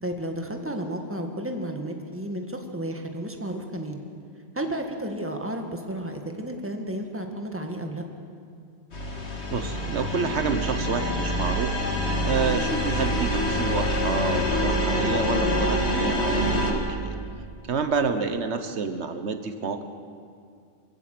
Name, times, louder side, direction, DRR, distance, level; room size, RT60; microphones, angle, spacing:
voice 1, 0.0-4.1 4.6-8.0, right 1 dB, 10° right, 3 dB, 1.8 m, -32 dB
sound 1, 8.9-16.7, left 1 dB, 80° left, 2.3 m, -26 dB
voice 2, 9.5-11.7 12.3-17.2 17.7-19.8, right 5 dB, 85° right, 8 dB, 1.4 m, -28 dB
24.0 x 15.5 x 7.7 m, 2.3 s
omnidirectional pair, 1.1 m